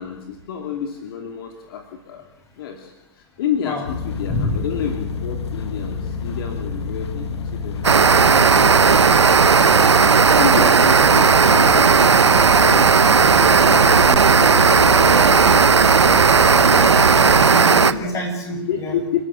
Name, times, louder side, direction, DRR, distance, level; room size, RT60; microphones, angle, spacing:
voice 1, 0.0-2.3 2.6-8.7 10.3-13.0 13.4-17.0 17.7-18.2 18.7-19.2, left 7 dB, 55° left, 5 dB, 2.9 m, -29 dB
sound 1, 3.8-17.6, left 4 dB, 75° left, 1.8 m, -29 dB
sound 2, 7.8-17.9, right 5 dB, 90° right, 1.1 m, -14 dB
voice 2, 11.6-11.9 16.5-19.0, left 2 dB, 20° left, 2 dB, 7.6 m, -28 dB
29.0 x 13.5 x 8.4 m, 0.97 s
hypercardioid pair, 125°, 14 cm